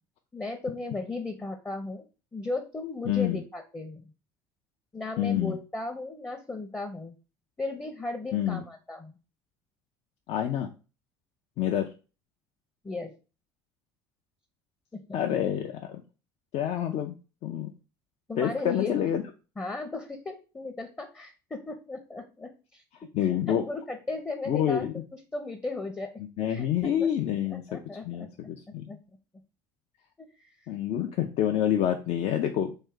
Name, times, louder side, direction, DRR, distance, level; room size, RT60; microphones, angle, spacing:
voice 1, 0.3-2.0 2.3-4.1 4.9-7.1 7.6-9.2 12.8-13.1 14.9-15.2 18.3-19.0 19.6-22.8 23.2-24.8 25.1-26.1 26.5-27.1 27.5-28.3 28.9-29.0 30.2-30.5, left 3 dB, 15° left, 5 dB, 0.6 m, -36 dB
voice 2, 3.1-3.4 5.2-5.6 8.3-8.6 10.3-10.7 11.6-11.9 15.1-16.0 16.5-17.2 17.4-17.7 18.4-19.2 23.1-23.6 24.5-24.9 26.2-28.9 30.7-32.8, left 10 dB, 55° left, 4 dB, 0.4 m, -28 dB
3.2 x 2.7 x 3.6 m, 0.34 s
hypercardioid pair, 65°, 13 cm